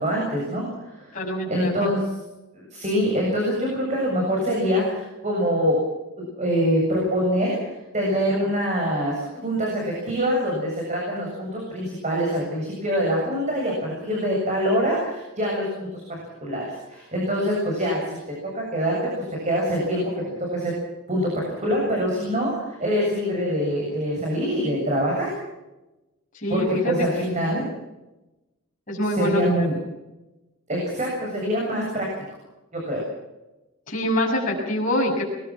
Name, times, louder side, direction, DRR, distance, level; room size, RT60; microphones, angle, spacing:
voice 1, 0.0-1.1 1.5-2.0 2.5-5.7 6.2-15.9 16.4-18.2 18.5-20.0 20.5-20.7 21.1-25.3 26.5-27.6 29.1-29.7 30.7-32.1 32.7-33.0, equal, 35° right, -2 dB, 7.4 m, -24 dB
voice 2, 1.1-1.9 26.3-27.2 28.9-29.4 33.9-35.2, left 1 dB, 40° left, -4 dB, 6.8 m, -25 dB
23.0 x 21.5 x 6.1 m, 1.0 s
head